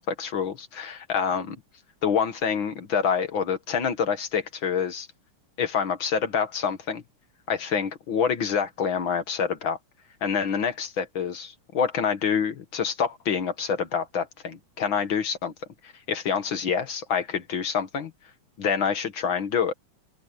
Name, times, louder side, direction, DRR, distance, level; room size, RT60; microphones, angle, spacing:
voice 1, 0.0-1.6 2.0-5.1 5.6-7.0 7.5-9.8 10.2-15.5 15.8-18.1 18.6-19.7, left 6 dB, 50° left, 1.7 m, -27 dB
omnidirectional pair, 3.8 m